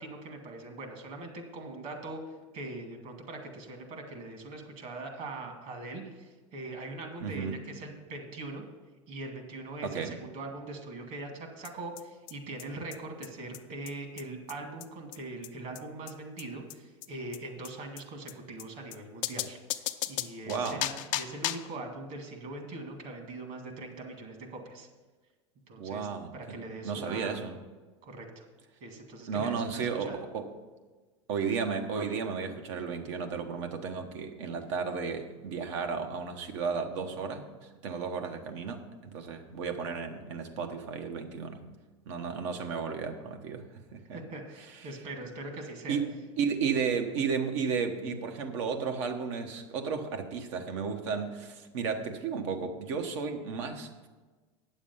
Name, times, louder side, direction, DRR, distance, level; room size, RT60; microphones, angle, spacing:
voice 1, 0.0-2.2 2.5-8.6 9.1-24.9 25.7-26.1 26.3-27.4 28.0-28.5 28.8-30.2 44.1-46.0, right 2 dB, 55° right, 3 dB, 2.3 m, -42 dB
voice 2, 7.2-7.6 9.8-10.1 20.5-20.8 25.8-27.6 29.3-30.5 31.3-41.6 42.1-44.2 45.9-46.1 46.4-54.1, right 5 dB, 70° right, 5 dB, 1.3 m, -33 dB
sound 1, 11.6-11.7 12.0-12.1 12.3-12.4 12.6-12.7 12.9-13.0 13.2-13.3 13.5-13.6 13.9-14.0 14.2-14.3 14.5-14.6 14.8-14.9 15.1-15.2 15.4-15.5 15.7-15.8 16.1-16.2 16.4-16.5 16.7-16.8 17.0-17.1 17.3-17.4 17.6-17.7 18.0-18.1 18.3-18.4 18.6-18.7 18.9-19.0 19.2-21.8, left 14 dB, 55° left, 0.5 m, -35 dB
9.0 x 7.2 x 5.6 m, 1.3 s
hypercardioid pair, 95°, 16 cm